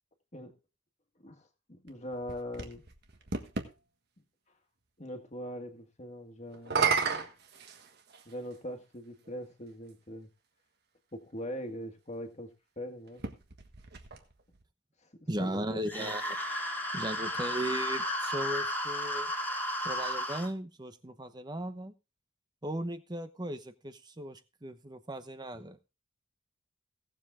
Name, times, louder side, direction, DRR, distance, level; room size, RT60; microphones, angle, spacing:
voice 1, 1.2-2.8 5.0-7.3 8.3-10.3 11.1-13.2 15.0-15.1 15.4-16.1, equal, 35° left, 1.8 m, -42 dB
sound 1, 1.9-3.7 6.5-8.3 9.3-9.4 13.1-14.6, right 5 dB, 50° right, 1.5 m, -33 dB
voice 2, 15.3-16.4 16.9-19.3 19.8-21.9 22.6-25.9, right 1 dB, 20° right, 0.9 m, -37 dB
sound 2, 15.9-20.5, equal, 10° left, 2.3 m, -33 dB
17.5 x 7.5 x 3.7 m
head